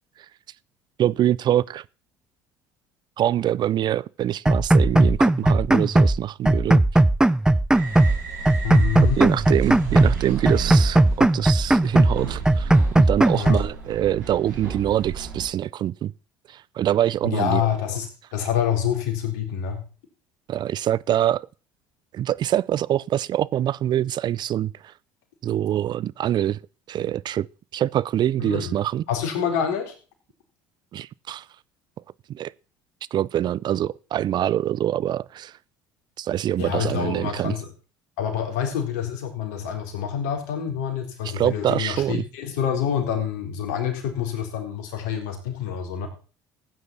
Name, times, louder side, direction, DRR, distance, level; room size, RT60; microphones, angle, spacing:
voice 1, 1.0-1.8 3.2-6.8 9.2-12.7 13.0-16.1 16.5-17.6 20.5-21.5 22.1-24.7 25.4-26.6 26.9-27.5 27.7-29.0 30.9-31.4 32.3-32.5 33.1-35.5 36.2-37.5 41.2-42.2, right 11 dB, 50° right, 0.5 m, -24 dB
sound 1, 4.4-6.2 6.4-8.2 8.4-10.2 10.4-12.2 12.4-13.7, right 1 dB, 10° right, 0.7 m, -18 dB
sound 2, 7.7-15.5, right 6 dB, 90° right, 4.6 m, -34 dB
voice 2, 8.6-9.2 13.3-13.6 17.2-18.1 18.3-19.8 28.4-28.7 29.1-29.9 36.6-37.7 38.2-46.1, left 8 dB, 75° left, 3.9 m, -27 dB
15.0 x 9.6 x 4.0 m
hypercardioid pair, 65°, 10 cm